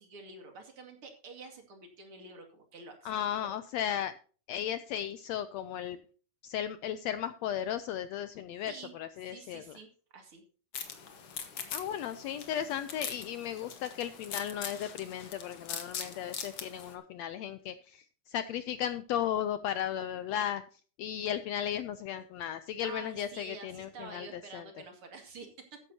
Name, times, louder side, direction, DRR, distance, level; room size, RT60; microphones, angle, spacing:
voice 1, 0.0-3.1 3.4-3.5 8.7-8.9 9.3-10.4 22.8-25.8, right 4 dB, 45° right, 4 dB, 2.9 m, -48 dB
voice 2, 3.0-4.1 4.5-6.0 6.4-9.6 11.7-20.6 21.0-24.6, left 10 dB, 85° left, 12 dB, 1.5 m, -35 dB
sound 1, 10.7-16.9, left 7 dB, 50° left, 2.2 m, -42 dB
14.0 x 10.5 x 2.8 m, 0.39 s
omnidirectional pair, 3.7 m